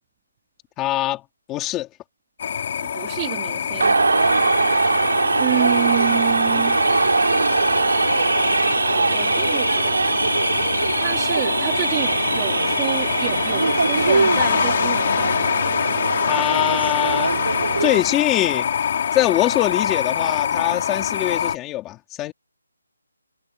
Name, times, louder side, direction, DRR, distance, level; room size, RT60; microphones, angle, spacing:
voice 1, 0.8-1.2 1.5-1.9 16.3-17.3 17.8-18.7 19.1-22.3, left 15 dB, 10° left, 3.8 m, -23 dB
sound 1, 2.4-21.6, left 8 dB, 35° left, 6.2 m, -25 dB
voice 2, 2.9-4.0 5.4-6.8 8.9-10.0 11.0-15.5, right 28 dB, 15° right, 4.1 m, -29 dB
sound 2, 3.8-18.0, right 3 dB, 85° right, 5.4 m, -21 dB
hypercardioid pair, 175°, 0 cm